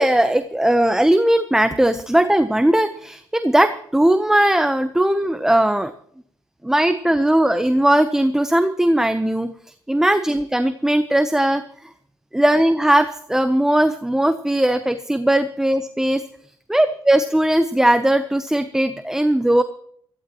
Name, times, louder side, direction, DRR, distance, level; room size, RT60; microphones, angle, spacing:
voice 1, 0.0-5.9 6.6-9.5 9.9-11.6 12.3-16.2 16.7-19.6, right 1 dB, 5° right, 10 dB, 0.8 m, -18 dB
20.0 x 15.0 x 3.0 m, 0.64 s
cardioid pair, 85°, 9 cm